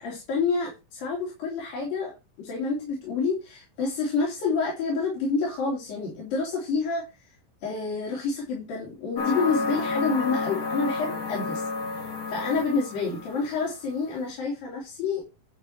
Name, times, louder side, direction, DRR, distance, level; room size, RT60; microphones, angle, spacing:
voice 1, 0.0-2.1 2.4-7.4 7.6-15.3, left 4 dB, 85° left, -3 dB, 4.6 m, -28 dB
sound 1, 9.2-13.5, left 3 dB, 50° left, 3.7 m, -31 dB
12.0 x 4.3 x 6.5 m, 0.27 s
omnidirectional pair, 3.9 m